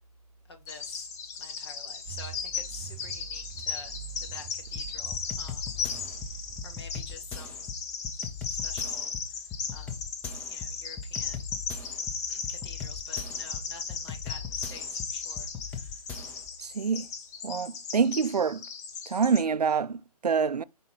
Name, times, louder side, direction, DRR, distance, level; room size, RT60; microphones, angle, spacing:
voice 1, 0.5-1.1 1.4-5.7 6.1-6.2 6.6-7.7 8.5-9.4 9.7-10.0 10.5-11.5 12.3-16.0, left 3 dB, 40° left, 2.0 m, -48 dB
Bird vocalization bird call bird song, 0.7-19.4, left 6 dB, 25° left, 1.1 m, -37 dB
sound 1, 2.1-7.9, right 10 dB, 15° right, 0.4 m, -45 dB
sound 2, 4.8-16.5, left 5 dB, 10° left, 0.8 m, -40 dB
voice 2, 16.6-17.1 17.4-18.6 19.1-20.6, right 6 dB, 80° right, 0.5 m, -26 dB
5.4 x 4.1 x 5.5 m
figure-of-eight pair, 140°, 20 cm